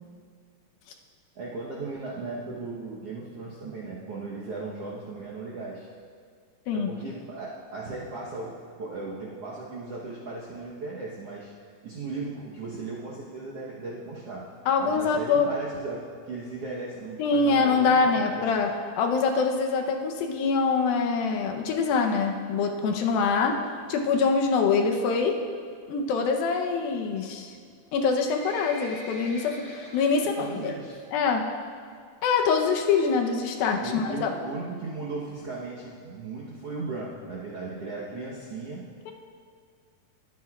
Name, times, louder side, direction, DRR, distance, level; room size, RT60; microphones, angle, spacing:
voice 1, 1.3-5.9 6.7-11.5 11.8-14.5 14.8-18.4 30.2-31.0 33.8-38.9, right 3 dB, 65° right, -5 dB, 1.5 m, -37 dB
voice 2, 14.7-15.5 17.2-18.7 19.0-23.6 23.9-25.4 25.9-27.6 27.9-30.7 31.1-31.5 32.2-34.3 39.1-39.2, left 5 dB, 80° left, 3 dB, 2.6 m, -24 dB
Livestock farm animals working animals, 27.9-30.5 30.9-31.2 31.5-31.6 32.3-32.4 32.6-32.7 32.9-33.0 33.5-33.8 34.4-34.5 34.7-34.8 35.0-35.1 35.3-35.4 35.8-35.9 36.4-36.5 37.0-37.1, left 1 dB, 25° left, 3.0 m, -43 dB
21.0 x 9.4 x 2.4 m, 2.1 s
omnidirectional pair, 4.2 m